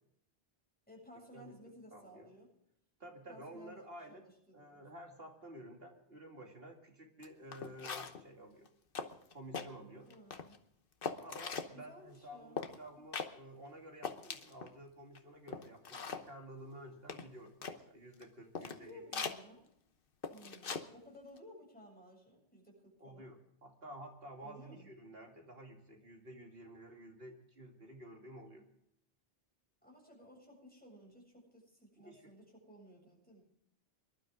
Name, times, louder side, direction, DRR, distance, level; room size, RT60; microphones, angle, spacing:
voice 1, 0.9-2.5 3.3-4.9 9.9-10.6 11.7-12.6 13.0-13.1 18.6-19.7 20.3-23.3 24.4-24.9 29.8-33.4, equal, 10° left, -2 dB, 7.2 m, -57 dB
voice 2, 1.9-2.3 3.0-4.2 4.5-8.7 9.3-10.1 11.2-19.2 23.0-28.6 32.0-32.2, right 1 dB, 70° right, 1 dB, 2.9 m, -52 dB
sound 1, 7.2-7.3 7.5-8.3 8.7-8.8 8.9-9.7 10.1-10.6 11.0-11.7 12.6-12.8 13.1-13.3 13.7-13.8 14.0-14.7 15.1-15.2 15.5-16.3 17.1-17.8 18.2-18.3 18.6-18.8 19.1-19.4 20.2-20.9 21.1-21.4, left 5 dB, 60° left, 1.2 m, -41 dB
24.5 x 12.0 x 3.7 m, 0.75 s
omnidirectional pair, 1.0 m